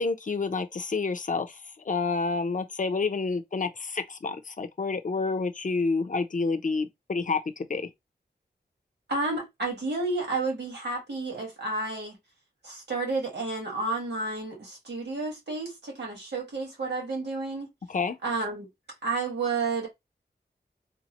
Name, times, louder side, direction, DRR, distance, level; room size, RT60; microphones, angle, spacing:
voice 1, 0.0-7.9 17.9-18.2, left 4 dB, 50° left, 0.6 m, -29 dB
voice 2, 9.1-12.2 12.6-17.7 18.2-18.7 19.0-19.9, right 3 dB, 85° right, 1.8 m, -31 dB
3.5 x 2.0 x 2.9 m
wide cardioid pair, 90°, 17 cm